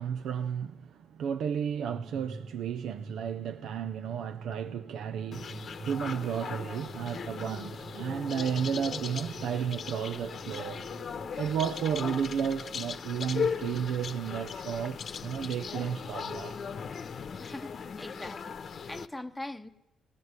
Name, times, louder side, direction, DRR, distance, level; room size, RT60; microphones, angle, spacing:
voice 1, 0.0-10.8 11.4-16.7, right 8 dB, 75° right, 0.7 m, -33 dB
sound 1, 1.9-11.7, right 3 dB, 40° right, 1.0 m, -46 dB
sound 2, 5.3-19.1, left 6 dB, 50° left, 0.9 m, -38 dB
voice 2, 17.4-19.7, left 1 dB, 5° left, 0.9 m, -42 dB
20.0 x 16.5 x 9.5 m
cardioid pair, 90°, 0 cm